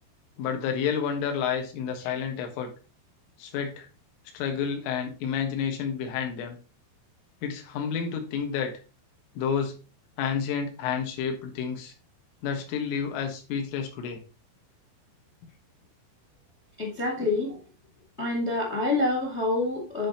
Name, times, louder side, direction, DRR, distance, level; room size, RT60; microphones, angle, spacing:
voice 1, 0.4-2.7 3.4-3.9 4.3-6.6 7.4-8.7 9.4-9.7 10.2-11.9 12.4-14.2, left 7 dB, 90° left, 4 dB, 4.0 m, -30 dB
voice 2, 16.8-17.6 18.2-20.1, left 2 dB, 50° left, 0 dB, 0.7 m, -27 dB
9.9 x 4.3 x 3.9 m, 0.33 s
omnidirectional pair, 5.5 m